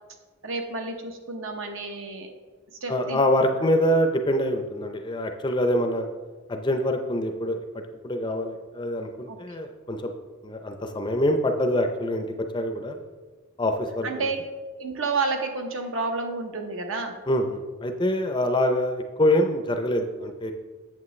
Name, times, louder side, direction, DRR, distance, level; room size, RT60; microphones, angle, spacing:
voice 1, 0.4-2.3 2.8-3.2 9.3-9.4 14.0-14.4 14.8-17.2, right 3 dB, 60° right, 4 dB, 0.9 m, -30 dB
voice 2, 2.9-6.1 6.5-10.1 10.4-12.3 12.5-13.0 13.6-14.3 17.3-20.5, left 1 dB, 20° left, 5 dB, 0.5 m, -25 dB
8.4 x 7.2 x 3.2 m, 1.3 s
head